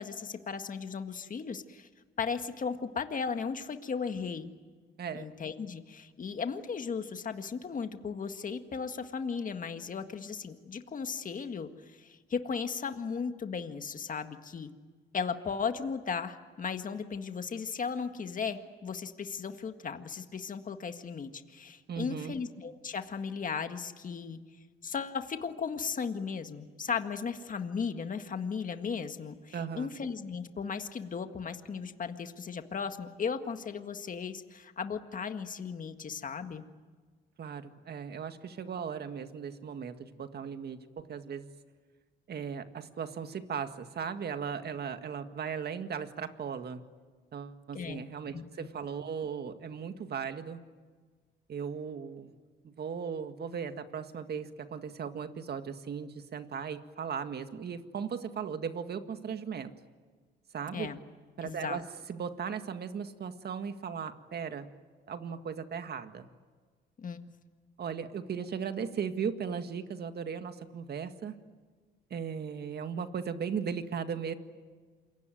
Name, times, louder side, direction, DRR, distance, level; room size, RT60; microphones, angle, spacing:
voice 1, 0.0-1.9 2.2-4.5 5.1-14.7 15.1-24.4 24.8-36.6 47.7-48.0 48.3-48.7 60.7-61.0 61.4-61.8 67.0-67.2, left 6 dB, 40° left, 7 dB, 1.8 m, -36 dB
voice 2, 5.0-5.3 21.9-22.3 29.5-29.9 37.4-41.5 42.3-46.8 47.3-50.6 51.5-52.3 52.6-59.7 60.5-60.9 61.4-61.8 62.1-64.7 65.1-66.3 67.8-71.4 72.1-74.3, right 7 dB, 55° right, 8 dB, 1.9 m, -37 dB
28.0 x 23.0 x 9.3 m, 1.5 s
cardioid pair, 90°, 20 cm